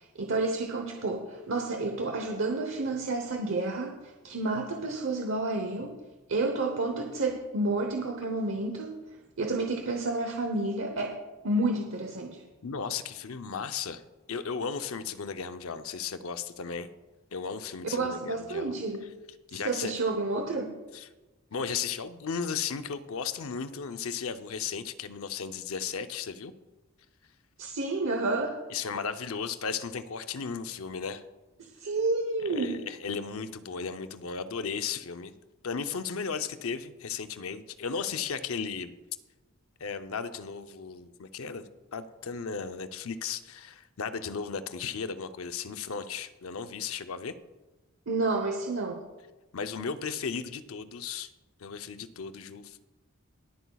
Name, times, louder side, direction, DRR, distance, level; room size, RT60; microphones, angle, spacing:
voice 1, 0.0-6.0 6.3-9.0 9.4-11.2 11.4-12.4 17.9-19.1 19.5-20.8 27.6-28.6 31.6-32.8 48.1-49.0, right 2 dB, 70° right, 3 dB, 0.9 m, -30 dB
voice 2, 12.6-14.0 14.3-16.9 17.3-18.7 19.5-19.9 20.9-21.1 21.5-26.5 28.7-31.2 32.4-35.3 35.6-38.9 39.8-41.6 41.9-47.3 49.5-51.3 51.6-52.9, left 6 dB, 85° left, 9 dB, 0.6 m, -35 dB
22.5 x 8.2 x 2.3 m, 1.1 s
head